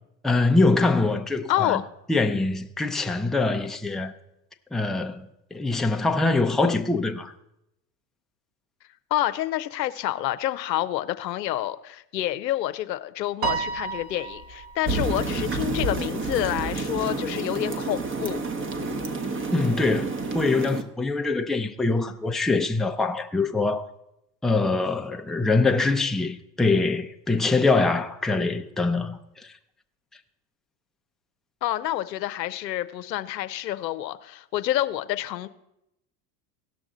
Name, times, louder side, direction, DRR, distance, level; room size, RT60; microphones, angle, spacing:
voice 1, 0.2-1.8 2.1-4.1 4.7-7.3 19.5-23.9 24.4-29.5, left 3 dB, ahead, 0.5 m, -24 dB
voice 2, 1.5-1.8 9.1-18.4 31.6-35.5, left 13 dB, 90° left, 0.7 m, -28 dB
Piano, 13.4-15.9, right 6 dB, 45° right, 1.5 m, -32 dB
sound 1, 14.9-20.8, right 3 dB, 25° right, 1.1 m, -29 dB
17.0 x 6.0 x 3.8 m
hypercardioid pair, 95°, 49 cm